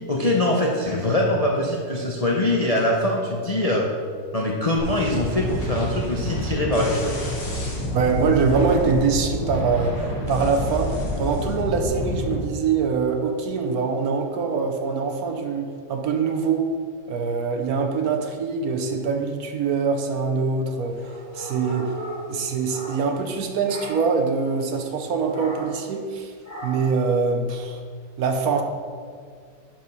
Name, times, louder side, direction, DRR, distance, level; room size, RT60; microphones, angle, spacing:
voice 1, 0.1-3.9 4.3-7.2, left 1 dB, 65° left, -1 dB, 0.3 m, -23 dB
sound 1, 4.8-12.4, equal, 85° left, 2.0 m, -28 dB
voice 2, 7.9-16.8 17.1-21.9 22.3-26.3 26.6-27.8 28.2-28.6, right 5 dB, 65° right, 5 dB, 1.1 m, -24 dB
sound 2, 20.9-23.3 23.6-24.2 25.3-25.9 26.4-27.0, right 1 dB, 10° left, 1.9 m, -37 dB
10.0 x 4.6 x 5.4 m, 2.1 s
omnidirectional pair, 1.9 m